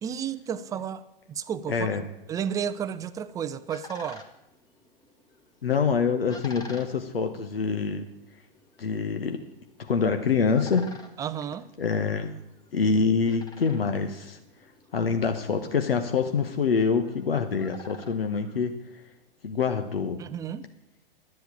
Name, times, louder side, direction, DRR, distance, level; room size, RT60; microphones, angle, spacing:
voice 1, 0.0-1.9 2.3-4.2 11.2-11.7 20.2-20.7, right 8 dB, 10° right, 0.4 m, -32 dB
voice 2, 1.7-2.0 5.6-8.1 8.8-9.4 9.8-10.8 11.8-12.3 12.7-14.4 14.9-18.7 19.4-20.2, left 5 dB, 75° left, 1.0 m, -25 dB
sound 1, 3.1-19.3, left 2 dB, 15° left, 1.5 m, -50 dB
11.5 x 8.0 x 8.6 m
figure-of-eight pair, 105°, 29 cm